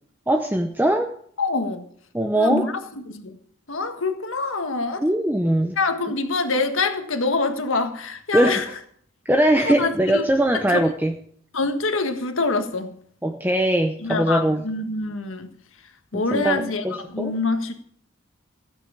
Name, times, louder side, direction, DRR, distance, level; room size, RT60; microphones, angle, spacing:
voice 1, 0.3-1.1 2.1-2.7 5.0-5.8 8.3-8.6 9.2-11.1 13.2-14.6 16.1-17.3, right 1 dB, 10° right, 0.7 m, -21 dB
voice 2, 1.4-1.9 2.4-3.4 3.7-5.0 5.8-8.7 9.6-10.2 10.7-10.8 11.5-13.0 14.0-15.5 16.1-17.8, left 3 dB, 75° left, 1.7 m, -25 dB
16.0 x 8.1 x 7.2 m
head